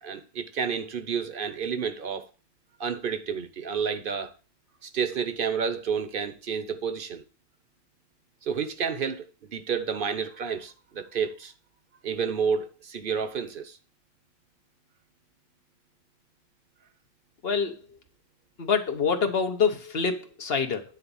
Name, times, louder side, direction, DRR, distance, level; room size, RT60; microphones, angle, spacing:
voice 1, 0.0-2.3 2.8-4.3 4.8-7.2 8.4-11.5 12.0-13.8, right 6 dB, 60° right, 1.1 m, -30 dB
voice 2, 17.4-17.7 18.6-20.8, left 5 dB, 70° left, 1.2 m, -26 dB
9.8 x 3.9 x 7.0 m
omnidirectional pair, 1.1 m